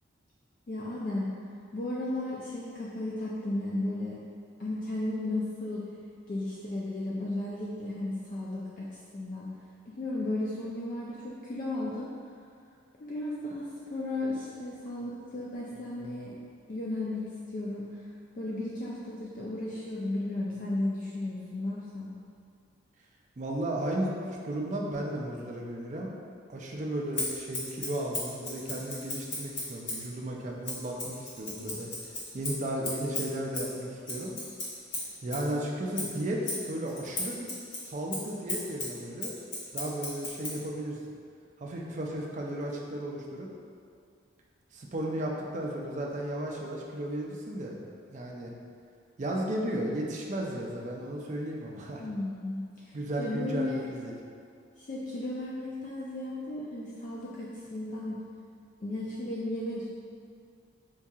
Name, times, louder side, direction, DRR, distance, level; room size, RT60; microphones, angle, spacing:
voice 1, 0.7-1.4 1.7-4.2 4.6-5.9 6.3-8.9 9.1-9.5 9.9-12.1 13.0-16.4 16.7-18.1 18.3-22.1 52.0-53.9 54.8-58.2 58.8-59.9, left 2 dB, 40° left, -6 dB, 0.3 m, -34 dB
voice 2, 23.4-24.1 24.4-26.1 26.5-31.9 32.3-34.3 35.2-37.5 37.9-39.3 39.7-41.0 41.6-43.5 44.7-47.8 48.1-48.5 49.2-52.0 52.9-54.1, right 1 dB, 40° right, -1 dB, 0.4 m, -34 dB
Scissors, 27.1-30.1 30.6-35.5 35.9-40.6, left 2 dB, 60° left, 1.1 m, -36 dB
4.5 x 2.7 x 2.3 m, 2.3 s
head